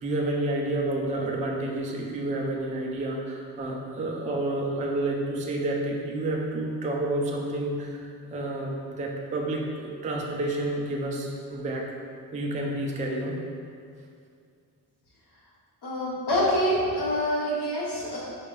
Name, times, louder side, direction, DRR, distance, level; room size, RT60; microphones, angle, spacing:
voice 1, 0.0-11.9 12.3-13.4, right 1 dB, 20° right, -1 dB, 0.3 m, -29 dB
voice 2, 15.8-18.2, equal, 65° left, -7 dB, 1.2 m, -26 dB
4.4 x 2.4 x 3.1 m, 2.3 s
cardioid pair, 105°, 42 cm